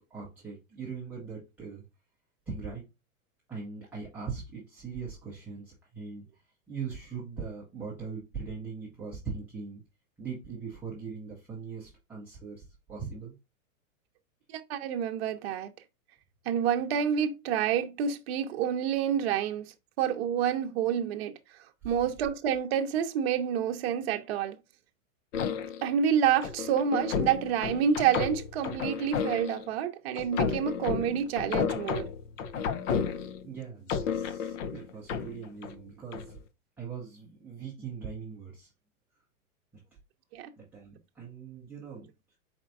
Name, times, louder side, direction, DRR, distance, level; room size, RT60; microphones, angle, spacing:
voice 1, 0.0-1.9 2.5-2.9 3.5-6.4 6.7-9.8 10.2-13.4 21.8-21.9 33.1-36.4 36.8-38.7 40.6-42.1, right 5 dB, 5° right, 0.6 m, -41 dB
voice 2, 14.5-15.7 16.5-21.4 21.8-24.6 25.8-32.1 40.3-40.5, right 8 dB, 45° right, 0.7 m, -28 dB
sound 1, 25.3-25.9 26.4-29.7 30.2-33.5 33.9-35.8 36.1-36.4, left 6 dB, 60° left, 0.7 m, -32 dB
4.4 x 4.3 x 2.5 m
supercardioid pair, 165°, 43 cm